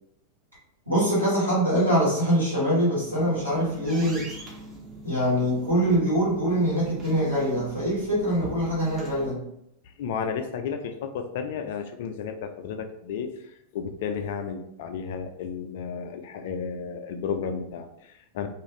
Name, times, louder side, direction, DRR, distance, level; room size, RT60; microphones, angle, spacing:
voice 1, 0.9-4.3 5.0-9.4, equal, 85° right, -10 dB, 1.5 m, -23 dB
sound 1, 2.8-9.3, right 1 dB, 20° right, 0.7 m, -42 dB
voice 2, 10.0-18.5, left 6 dB, 55° left, 6 dB, 0.3 m, -33 dB
2.4 x 2.4 x 3.0 m, 0.78 s
figure-of-eight pair, 90°, 0 cm